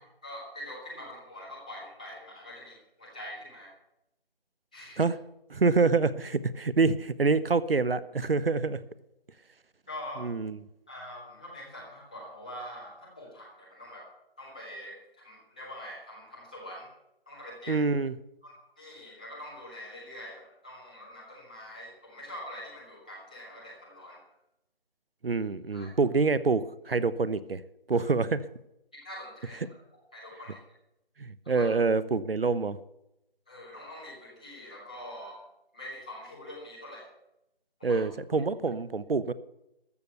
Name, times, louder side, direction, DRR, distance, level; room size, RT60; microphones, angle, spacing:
voice 1, 0.2-3.7 4.7-5.0 9.9-10.3 10.9-14.1 14.4-16.9 17.3-17.8 18.4-24.3 25.7-25.9 27.9-28.0 28.9-29.6 30.1-30.6 31.4-31.7 33.5-35.4 35.7-37.1 37.8-38.0, left 1 dB, 10° left, -7 dB, 1.6 m, -44 dB
voice 2, 5.5-8.8 10.2-10.6 17.7-18.1 25.2-27.6 27.9-28.5 31.2-32.8 37.8-39.3, right 4 dB, 75° right, 17 dB, 0.8 m, -26 dB
14.0 x 6.8 x 8.0 m, 0.86 s
figure-of-eight pair, 180°, 29 cm